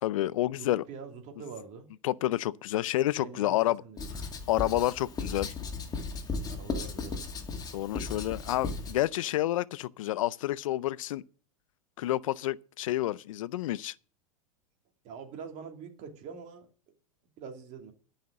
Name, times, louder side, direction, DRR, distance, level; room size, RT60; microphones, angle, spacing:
voice 1, 0.0-0.8 2.0-3.8 4.5-5.5 7.7-11.2 12.0-13.9, left 14 dB, 70° left, 0.5 m, -29 dB
voice 2, 0.6-1.9 3.2-4.1 6.4-7.2 15.0-16.7 17.4-17.9, right 6 dB, 45° right, 2.8 m, -44 dB
Writing, 4.0-9.0, left 4 dB, 20° left, 2.3 m, -36 dB
12.0 x 5.7 x 7.5 m
hypercardioid pair, 105°, 18 cm